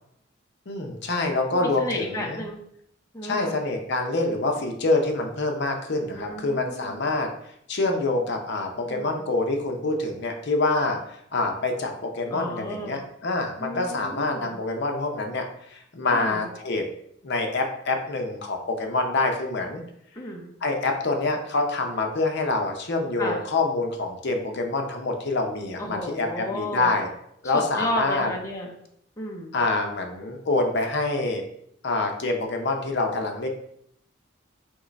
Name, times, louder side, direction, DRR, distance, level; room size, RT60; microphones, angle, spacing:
voice 1, 0.7-2.4 3.2-7.3 7.7-16.8 17.2-19.8 20.6-27.1 27.4-28.3 29.5-31.4 31.8-33.5, left 2 dB, 55° left, 3 dB, 0.6 m, -26 dB
voice 2, 1.5-2.6 3.1-3.5 6.1-7.0 8.9-9.2 12.3-13.0 13.6-14.6 16.1-16.5 20.1-20.5 23.2-23.4 25.8-26.9 27.4-28.7 29.2-29.5, left 1 dB, 15° left, -1 dB, 0.5 m, -33 dB
3.7 x 3.1 x 4.0 m, 0.73 s
head